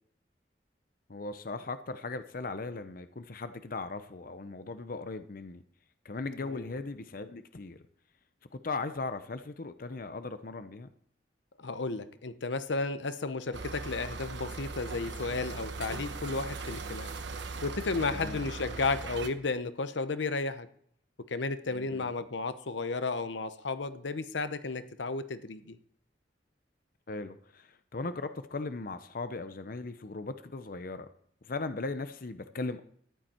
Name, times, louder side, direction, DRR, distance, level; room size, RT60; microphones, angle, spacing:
voice 1, 1.1-5.6 6.0-7.8 8.5-10.9 18.1-18.4 21.7-22.1 27.1-31.1 31.4-32.8, left 3 dB, 50° left, 10 dB, 0.7 m, -38 dB
voice 2, 11.6-17.1 17.6-20.7 21.3-25.8, left 3 dB, 80° left, 12 dB, 0.8 m, -33 dB
sound 1, 13.5-19.3, right 3 dB, 80° right, 1.1 m, -39 dB
13.5 x 10.5 x 4.4 m, 0.65 s
head